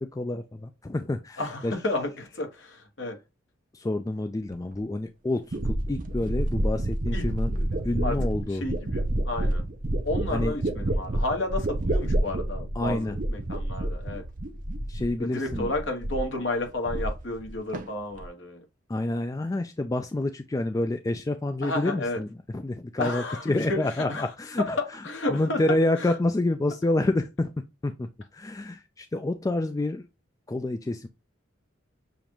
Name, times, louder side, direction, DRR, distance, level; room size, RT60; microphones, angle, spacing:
voice 1, 0.1-1.7 3.7-8.6 10.3-10.5 12.8-13.1 14.9-15.7 18.9-22.3 22.5-24.8 25.3-30.1 30.5-31.1, left 2 dB, 15° left, 0.3 m, -28 dB
voice 2, 1.4-3.2 7.1-7.2 8.0-8.2 8.5-9.6 10.0-14.2 15.2-18.6 21.6-22.2 23.0-24.3 24.6-24.7 25.0-25.6 26.0-26.1, left 2 dB, 65° left, 1.5 m, -32 dB
sound 1, 4.8-4.9 5.5-15.2 15.5-16.3 16.6-17.5 17.7-18.3, right 1 dB, 45° right, 0.7 m, -29 dB
7.0 x 2.5 x 3.0 m
head